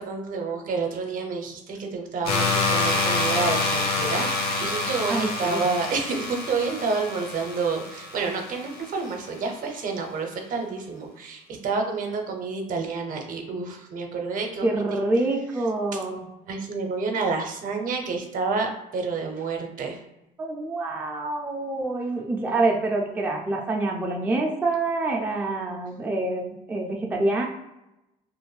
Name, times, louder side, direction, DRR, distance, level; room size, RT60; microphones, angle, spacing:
voice 1, 0.0-14.8 16.5-20.0, right 4 dB, 55° right, 3 dB, 0.6 m, -29 dB
sound 1, 2.2-9.1, left 3 dB, 65° left, 0.7 m, -27 dB
voice 2, 5.1-5.6 14.6-16.3 20.4-27.5, right 2 dB, 10° right, 0 dB, 0.3 m, -26 dB
2.5 x 2.1 x 3.1 m, 0.93 s
cardioid pair, 110°, 17 cm